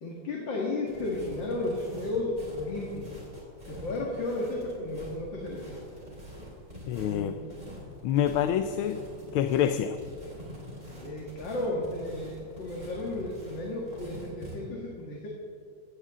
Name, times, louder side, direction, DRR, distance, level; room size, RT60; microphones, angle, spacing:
voice 1, 0.0-3.1 3.7-5.7 7.1-7.5 8.6-8.7 11.0-15.3, left 2 dB, 60° left, -2 dB, 2.6 m, -33 dB
sound 1, 0.9-14.6, equal, 20° right, 4.2 m, -45 dB
voice 2, 6.9-7.3 8.0-9.0 9.3-10.0, left 10 dB, 80° left, 9 dB, 1.5 m, -26 dB
17.0 x 16.0 x 3.7 m, 2.3 s
omnidirectional pair, 2.3 m